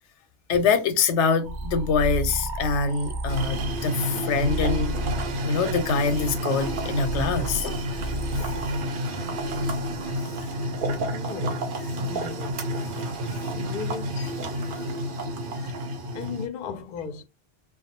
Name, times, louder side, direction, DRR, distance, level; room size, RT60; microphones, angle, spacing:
voice 1, 0.5-5.0 5.4-7.8 8.4-8.5 13.0-13.4 14.8-14.9, left 4 dB, 90° left, 0.9 m, -25 dB
sound 1, 1.4-11.1, right 1 dB, 90° right, 0.9 m, -34 dB
sound 2, 3.3-16.5, equal, 60° right, 0.7 m, -30 dB
voice 2, 11.1-11.7 12.0-12.7 13.5-14.2 16.1-17.2, left 6 dB, 60° left, 0.6 m, -36 dB
2.2 x 2.0 x 2.8 m
omnidirectional pair, 1.1 m